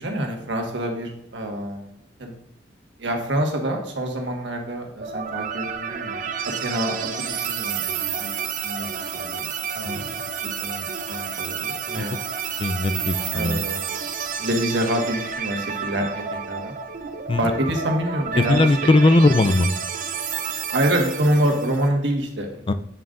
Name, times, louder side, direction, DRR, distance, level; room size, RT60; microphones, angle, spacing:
voice 1, 0.0-2.3 3.0-8.3 8.6-9.5 9.7-10.1 10.4-12.1 13.3-13.9 14.4-16.7 17.4-18.8 20.7-22.6, right 1 dB, 80° right, 2 dB, 1.5 m, -26 dB
sound 1, 5.0-21.9, right 7 dB, 45° right, 0.7 m, -30 dB
voice 2, 12.6-13.6 17.3-17.4 18.5-19.7 22.7-22.8, left 2 dB, 30° left, 11 dB, 0.4 m, -19 dB
8.2 x 7.5 x 2.5 m, 0.80 s
head